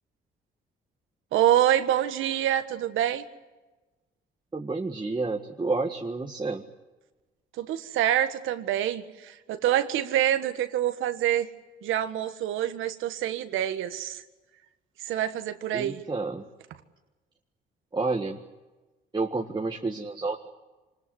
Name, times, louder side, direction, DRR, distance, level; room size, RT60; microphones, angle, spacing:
voice 1, 1.3-3.2 7.6-11.5 11.8-14.2 15.0-16.0, right 11 dB, 90° right, 9 dB, 1.6 m, -26 dB
voice 2, 4.5-6.6 15.7-16.4 17.9-18.4 19.1-20.5, right 3 dB, 20° right, 1 dB, 1.6 m, -30 dB
25.5 x 20.0 x 9.7 m, 1.2 s
cardioid pair, 90°, 20 cm